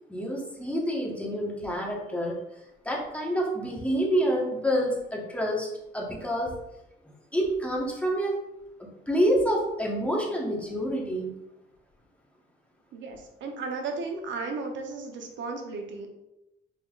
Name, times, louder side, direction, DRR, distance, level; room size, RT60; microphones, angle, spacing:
voice 1, 0.1-2.4 2.8-5.7 5.9-6.5 7.3-8.4 8.8-11.3, equal, 5° left, -2 dB, 1.2 m, -27 dB
voice 2, 12.9-16.1, right 3 dB, 70° right, 3 dB, 0.9 m, -35 dB
5.3 x 3.4 x 2.4 m, 0.90 s
cardioid pair, 90°, 20 cm